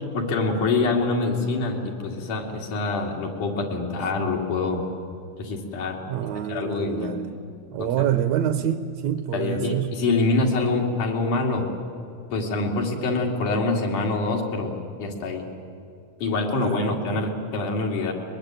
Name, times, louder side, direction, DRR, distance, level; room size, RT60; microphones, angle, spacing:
voice 1, 0.0-4.8 5.4-6.0 6.5-7.2 7.8-8.1 9.3-11.7 12.3-14.7 15.0-15.5 16.2-18.1, left 3 dB, 85° left, 0 dB, 4.3 m, -25 dB
voice 2, 6.1-7.4 7.7-10.0 16.6-17.3, right 10 dB, 70° right, 10 dB, 1.9 m, -27 dB
22.5 x 21.5 x 9.1 m, 2.6 s
omnidirectional pair, 3.5 m